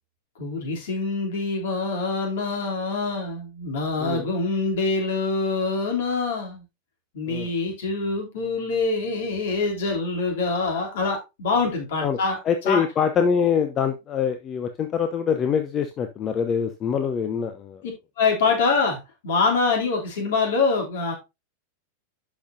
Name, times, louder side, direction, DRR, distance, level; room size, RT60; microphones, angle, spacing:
voice 1, 0.4-6.6 7.1-12.4 12.6-12.8 18.2-21.1, left 4 dB, 55° left, 1 dB, 3.2 m, -25 dB
voice 2, 12.4-17.8, left 7 dB, 30° left, 7 dB, 0.8 m, -24 dB
11.5 x 5.5 x 2.7 m, 0.24 s
figure-of-eight pair, 90°, 0 cm